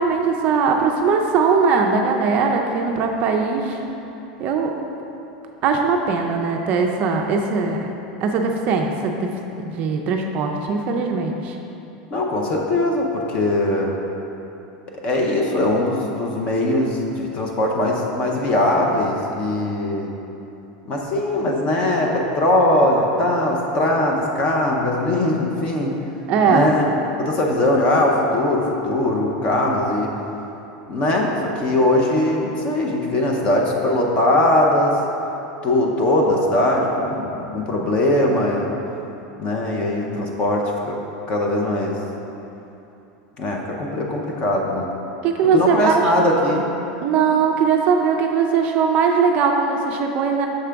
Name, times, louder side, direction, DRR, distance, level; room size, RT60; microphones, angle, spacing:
voice 1, 0.0-3.8 4.4-4.7 5.6-7.9 8.2-9.3 9.6-11.5 26.3-26.7 45.2-46.1 47.0-50.5, right 5 dB, 35° right, 2 dB, 0.4 m, -20 dB
voice 2, 12.1-14.0 15.0-20.1 20.9-26.0 26.5-26.8 27.2-30.2 30.9-35.0 35.6-38.8 39.4-40.9 41.3-42.0 43.4-44.9 45.5-46.7, left 1 dB, 25° left, 0 dB, 0.6 m, -20 dB
6.6 x 4.8 x 3.4 m, 2.9 s
supercardioid pair, 165°, 4 cm